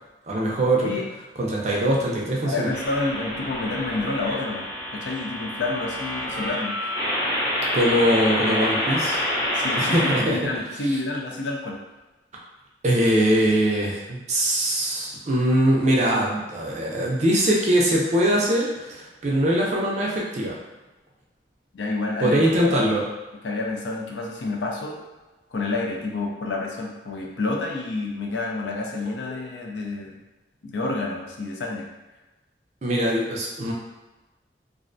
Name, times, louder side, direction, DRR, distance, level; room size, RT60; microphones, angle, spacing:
voice 1, 0.3-0.9 1.4-2.7 7.7-9.2 9.7-10.4 12.8-20.6 22.2-23.0 32.8-33.7, right 1 dB, 40° right, -3 dB, 0.4 m, -22 dB
voice 2, 2.4-4.7 4.9-6.7 9.5-11.8 21.7-22.9 23.4-25.0 25.5-30.2 30.6-31.9, left 2 dB, 90° left, 0 dB, 0.5 m, -29 dB
sound 1, 2.7-10.2, left 1 dB, 15° left, 0.6 m, -27 dB
2.5 x 2.1 x 2.5 m, 1.1 s
head